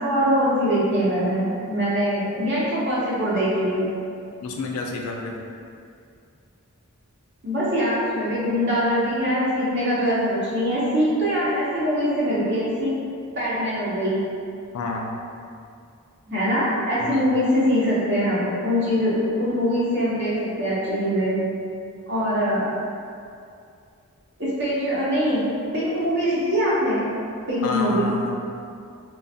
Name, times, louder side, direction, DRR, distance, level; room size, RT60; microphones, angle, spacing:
voice 1, 0.0-3.9 7.4-12.9 13.3-14.2 16.3-21.4 22.1-22.7 24.4-25.4 25.7-27.0 27.5-28.1, equal, 50° right, -9 dB, 0.8 m, -23 dB
voice 2, 4.4-5.3 14.7-15.2 17.0-17.3 27.6-28.4, left 3 dB, 85° left, 1 dB, 0.3 m, -29 dB
2.4 x 2.2 x 2.5 m, 2.4 s
head